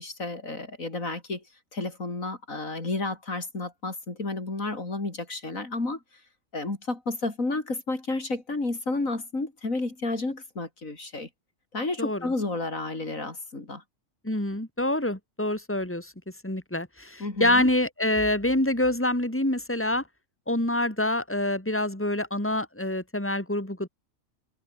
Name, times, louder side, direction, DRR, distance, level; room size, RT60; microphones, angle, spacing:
voice 1, 0.0-1.4 1.7-6.0 6.5-11.3 11.7-13.8 17.2-17.7, left 2 dB, 75° left, 4.8 m, -31 dB
voice 2, 12.0-12.3 14.2-16.1 16.4-20.0 20.5-23.9, left 1 dB, 10° left, 4.1 m, -26 dB
omnidirectional pair, 1.4 m